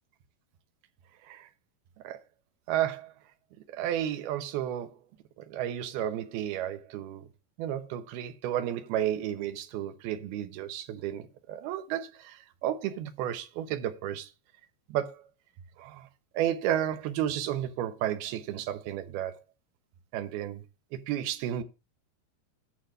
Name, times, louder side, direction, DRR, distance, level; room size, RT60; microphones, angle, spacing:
voice 1, 2.7-3.1 3.7-4.9 5.4-7.3 7.6-14.3 14.9-15.2 15.8-16.1 16.3-19.4 20.1-20.6 20.9-21.6, right 11 dB, 75° right, 2.6 m, -32 dB
11.5 x 5.0 x 6.3 m
omnidirectional pair, 5.0 m